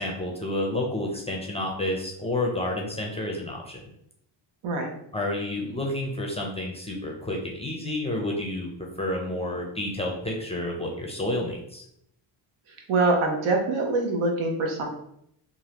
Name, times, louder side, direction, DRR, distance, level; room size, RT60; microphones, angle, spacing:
voice 1, 0.0-3.8 5.1-8.7 9.0-11.8, left 1 dB, 15° left, 0 dB, 0.5 m, -30 dB
voice 2, 12.9-14.8, right 3 dB, 70° right, 2 dB, 0.9 m, -24 dB
3.1 x 2.5 x 2.8 m, 0.74 s
cardioid pair, 95°, 50 cm